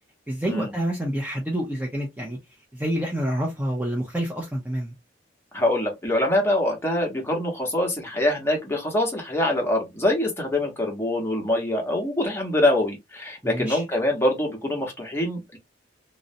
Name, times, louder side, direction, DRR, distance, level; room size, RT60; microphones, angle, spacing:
voice 1, 0.3-2.4 2.7-4.9 13.4-13.8, right 1 dB, 10° right, 0.5 m, -28 dB
voice 2, 5.5-15.6, left 1 dB, 15° left, 0.8 m, -24 dB
2.6 x 2.0 x 2.5 m
head